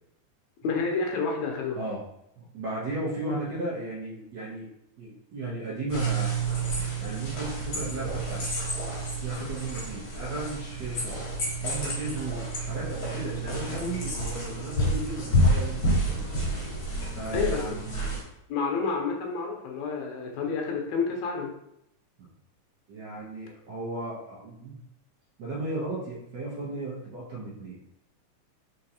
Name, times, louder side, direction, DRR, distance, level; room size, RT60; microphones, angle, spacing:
voice 1, 0.6-1.8 17.3-17.6 18.5-21.5, left 5 dB, 80° left, 1 dB, 2.0 m, -29 dB
voice 2, 2.4-4.7 5.0-6.3 7.0-8.4 9.2-11.1 11.6-16.2 17.2-18.1 22.2-22.3 22.9-24.8 25.4-27.8, right 2 dB, 85° right, -6 dB, 0.9 m, -35 dB
sound 1, 5.9-18.2, right 1 dB, 50° left, 2.0 m, -29 dB
4.4 x 3.9 x 2.8 m, 0.79 s
omnidirectional pair, 3.4 m